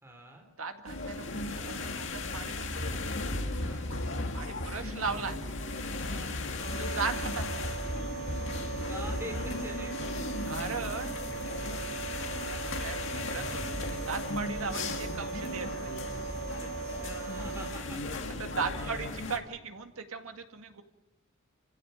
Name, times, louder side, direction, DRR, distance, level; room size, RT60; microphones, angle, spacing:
voice 1, 0.0-0.5 3.6-3.9 6.1-6.4 8.9-10.0 16.6-19.0, right 1 dB, 10° right, 2 dB, 3.4 m, -45 dB
voice 2, 0.6-2.9 4.3-5.4 6.8-7.5 10.5-11.9 12.5-15.7 18.4-20.8, right 5 dB, 80° right, 6 dB, 2.1 m, -38 dB
sound 1, 0.9-19.4, left 2 dB, 60° left, 2.3 m, -36 dB
sound 2, 6.6-17.7, right 6 dB, 45° right, 7.0 m, -40 dB
28.5 x 16.0 x 7.9 m, 1.0 s
head